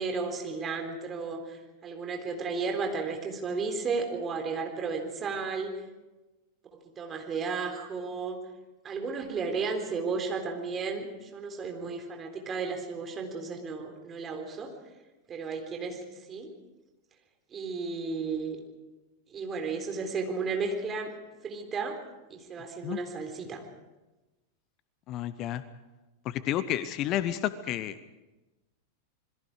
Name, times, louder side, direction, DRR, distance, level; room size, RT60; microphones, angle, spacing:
voice 1, 0.0-5.7 7.0-8.4 8.8-14.7 15.3-16.0 16.3-16.5 17.5-18.6 19.3-21.1 21.4-22.0 22.3-23.6, right 4 dB, 25° right, 4 dB, 3.8 m, -33 dB
voice 2, 25.1-25.6 26.2-28.0, left 12 dB, 35° left, 15 dB, 0.8 m, -31 dB
27.5 x 21.5 x 4.9 m, 1.1 s
figure-of-eight pair, 90°, 0 cm